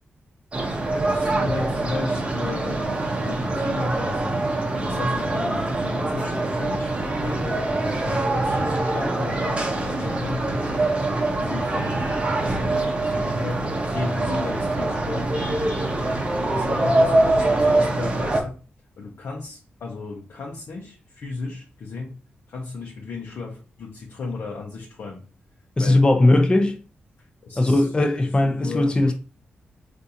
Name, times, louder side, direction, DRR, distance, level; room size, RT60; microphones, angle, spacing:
sound 1, 0.5-18.4, right 2 dB, 30° right, 0.7 m, -24 dB
voice 1, 0.9-2.8 3.1-10.9 11.2-12.1 12.4-15.4 16.5-18.5 19.0-22.2 22.5-25.2 25.8-26.0 27.2-28.1 28.4-29.1, left 3 dB, 75° left, 0.7 m, -35 dB
voice 2, 25.8-26.8 27.6-29.1, left 2 dB, 25° left, 0.6 m, -18 dB
3.8 x 2.5 x 2.8 m
wide cardioid pair, 100°, 4 cm